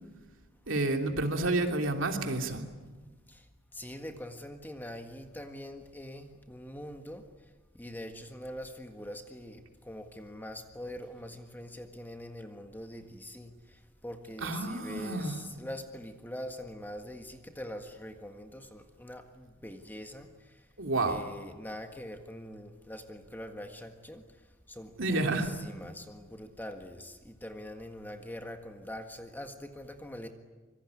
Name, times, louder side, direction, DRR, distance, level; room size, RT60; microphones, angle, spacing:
voice 1, 0.7-2.6 14.4-15.4 20.8-21.2 25.0-25.5, right 2 dB, 65° right, 4 dB, 3.1 m, -30 dB
voice 2, 3.7-7.2 7.7-13.5 14.0-20.3 21.0-24.2 24.7-30.3, left 1 dB, 10° left, 5 dB, 1.7 m, -43 dB
25.5 x 23.0 x 9.7 m, 1.3 s
head